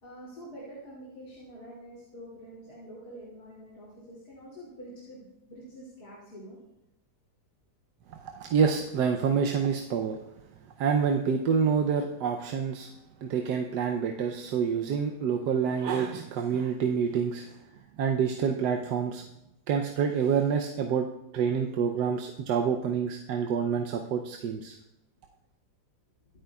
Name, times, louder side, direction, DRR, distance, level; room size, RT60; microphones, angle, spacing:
voice 1, 0.0-6.6, right 1 dB, 65° left, -6 dB, 3.4 m, -46 dB
voice 2, 8.1-10.2 10.8-12.9 13.2-17.5 18.0-19.2 19.7-21.1 21.3-24.8, right 6 dB, 80° right, 3 dB, 1.3 m, -27 dB
24.0 x 9.0 x 2.3 m, 0.90 s
omnidirectional pair, 1.8 m